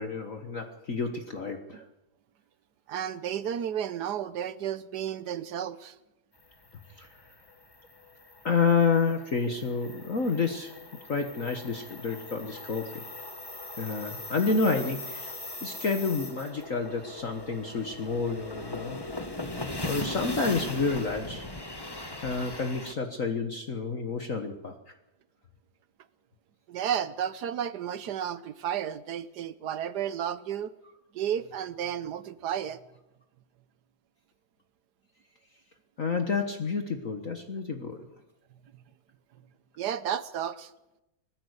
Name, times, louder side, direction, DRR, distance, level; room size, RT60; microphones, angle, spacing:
voice 1, 0.0-1.8 7.0-7.2 8.4-10.8 11.1-13.0 13.8-19.0 19.8-21.5 22.2-24.7 36.0-38.1, left 4 dB, 45° left, 5 dB, 1.6 m, -29 dB
voice 2, 2.9-5.9 26.7-30.7 31.1-32.8 39.8-40.7, right 9 dB, 60° right, 15 dB, 1.3 m, -32 dB
sound 1, 6.5-22.9, left 2 dB, 15° left, 1.2 m, -40 dB
20.5 x 15.5 x 8.1 m, 0.93 s
omnidirectional pair, 2.2 m